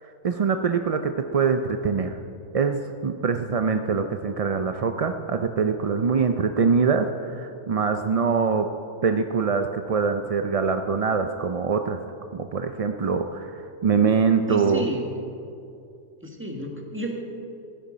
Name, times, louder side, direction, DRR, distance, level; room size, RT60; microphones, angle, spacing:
voice 1, 0.2-2.2 2.5-8.7 9.0-12.0 12.3-14.9, right 5 dB, 60° right, 7 dB, 0.3 m, -24 dB
voice 2, 14.5-15.1 16.2-17.2, right 1 dB, 10° right, 1 dB, 1.5 m, -31 dB
16.0 x 10.0 x 5.1 m, 2.5 s
omnidirectional pair, 1.3 m